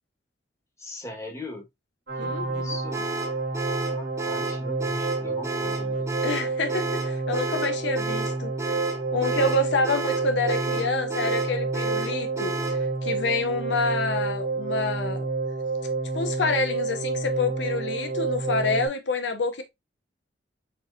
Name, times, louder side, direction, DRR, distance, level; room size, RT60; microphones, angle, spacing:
voice 1, 0.8-1.6 2.2-3.1 3.9-6.1, left 2 dB, 15° left, 1.4 m, -40 dB
sound 1, 2.1-18.9, right 3 dB, 65° right, 1.7 m, -29 dB
voice 2, 2.2-2.8 6.2-8.8 9.1-15.3 16.1-19.6, left 3 dB, 80° left, 0.7 m, -28 dB
sound 2, 2.9-12.8, right 2 dB, 15° right, 1.1 m, -32 dB
4.4 x 4.4 x 2.6 m
head